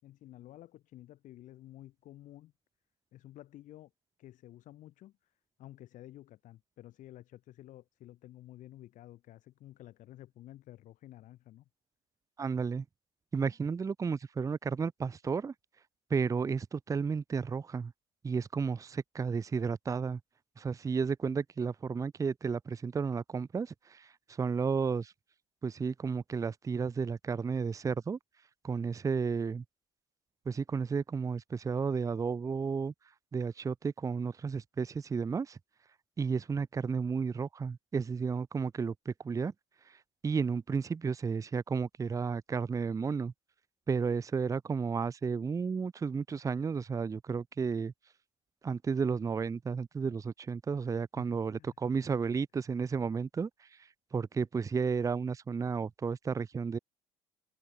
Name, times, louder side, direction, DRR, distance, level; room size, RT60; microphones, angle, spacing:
voice 1, 0.0-2.5 3.1-3.9 4.2-5.3 5.6-11.7 51.2-51.7 52.3-52.4 52.6-52.8, left 14 dB, 60° left, 6.0 m, -52 dB
voice 2, 12.4-12.8 13.3-15.5 16.1-17.9 18.2-20.2 20.6-24.1 24.4-25.1 25.6-28.2 28.6-29.6 30.5-32.9 33.3-35.6 36.2-39.5 40.2-43.3 43.9-47.9 48.6-53.5 54.1-56.8, right 5 dB, 20° right, 0.6 m, -32 dB
supercardioid pair, 80°, 15 cm